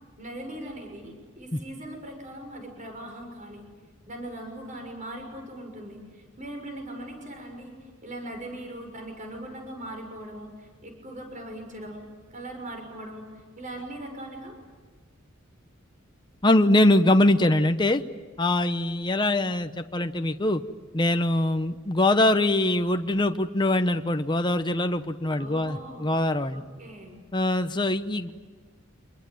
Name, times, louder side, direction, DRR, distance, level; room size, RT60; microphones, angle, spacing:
voice 1, 0.2-3.6 4.1-7.7 8.0-14.6 25.4-26.2 26.5-27.2, right 1 dB, 40° right, 4 dB, 6.2 m, -40 dB
voice 2, 16.4-18.0 18.4-20.6 20.9-26.6 27.3-28.3, left 1 dB, 25° left, 7 dB, 0.9 m, -23 dB
27.0 x 21.5 x 9.3 m, 1.4 s
head